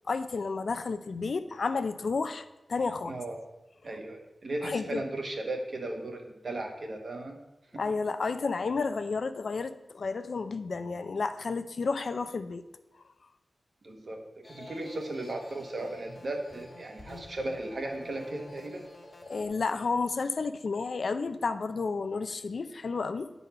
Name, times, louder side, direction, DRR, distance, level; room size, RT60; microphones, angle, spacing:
voice 1, 0.1-3.2 4.6-5.0 7.7-12.7 19.3-23.3, left 4 dB, 70° left, 10 dB, 0.4 m, -31 dB
voice 2, 3.1-3.4 3.8-7.4 13.8-14.2 14.5-18.8, right 2 dB, 60° right, 3 dB, 1.2 m, -36 dB
sound 1, 14.4-19.5, left 1 dB, 30° left, 1.3 m, -49 dB
8.9 x 4.1 x 5.5 m, 0.97 s
wide cardioid pair, 100°, 0 cm